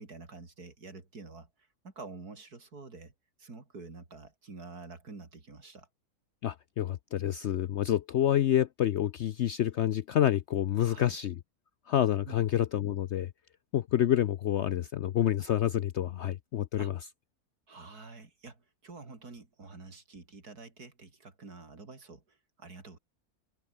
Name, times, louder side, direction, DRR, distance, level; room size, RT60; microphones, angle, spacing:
voice 1, 0.0-3.1 3.4-5.9 10.8-11.2 12.2-12.4 16.8-16.9 17.7-23.0, right 3 dB, 75° right, 4.2 m, -48 dB
voice 2, 6.4-11.4 11.9-13.3 13.7-16.9, left 11 dB, 65° left, 0.7 m, -28 dB
open air
omnidirectional pair, 1.6 m